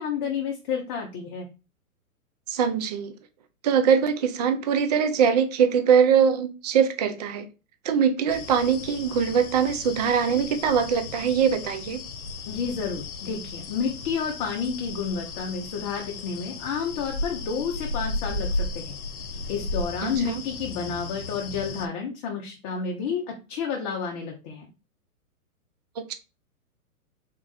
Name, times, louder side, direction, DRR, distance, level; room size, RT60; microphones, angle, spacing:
voice 1, 0.0-1.5 12.5-18.9 19.5-24.7, left 6 dB, 30° left, 0.7 m, -30 dB
voice 2, 2.5-3.1 3.6-7.5 7.8-12.0 20.0-20.4 26.0-26.1, right 7 dB, 30° right, 0.4 m, -22 dB
sound 1, 8.3-21.9, left 2 dB, 70° left, 0.9 m, -35 dB
3.6 x 2.5 x 3.9 m
hypercardioid pair, 125°, 44 cm